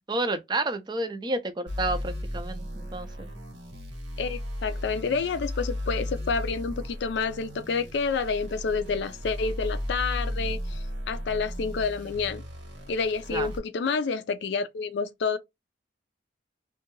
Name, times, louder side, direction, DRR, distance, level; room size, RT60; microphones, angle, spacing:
voice 1, 0.1-3.3 13.3-13.5, right 2 dB, 25° right, 0.4 m, -30 dB
sound 1, 1.7-13.6, left 1 dB, 85° right, 1.1 m, -35 dB
voice 2, 4.2-12.4 12.9-15.4, left 5 dB, 70° left, 0.4 m, -29 dB
2.6 x 2.2 x 2.9 m
head